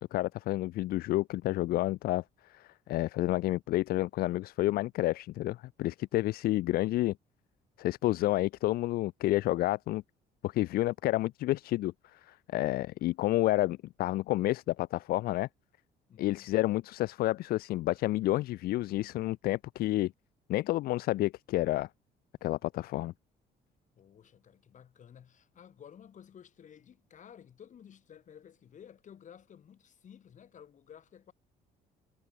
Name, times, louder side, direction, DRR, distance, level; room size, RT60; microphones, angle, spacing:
voice 1, 0.1-2.2 2.5-7.1 7.8-10.0 10.4-15.5 16.2-20.1 20.5-21.9 22.4-23.1, left 16 dB, 65° left, 0.4 m, -30 dB
voice 2, 16.1-16.5 24.0-31.3, left 8 dB, 45° left, 4.5 m, -54 dB
cardioid pair, 110°, 17 cm